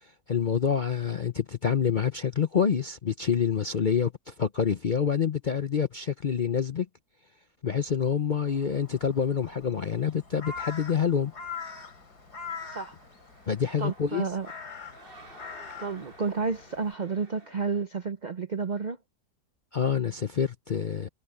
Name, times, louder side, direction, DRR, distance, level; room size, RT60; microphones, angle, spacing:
voice 1, 0.0-6.9 7.6-11.3 13.5-14.2 19.7-21.1, left 7 dB, 50° left, 0.5 m, -27 dB
Crow, 8.5-16.9, left 5 dB, 70° left, 3.5 m, -43 dB
sound 1, 10.2-17.8, right 1 dB, 30° right, 5.7 m, -55 dB
voice 2, 13.8-14.5 15.8-19.0, right 5 dB, 60° right, 0.4 m, -31 dB
omnidirectional pair, 1.8 m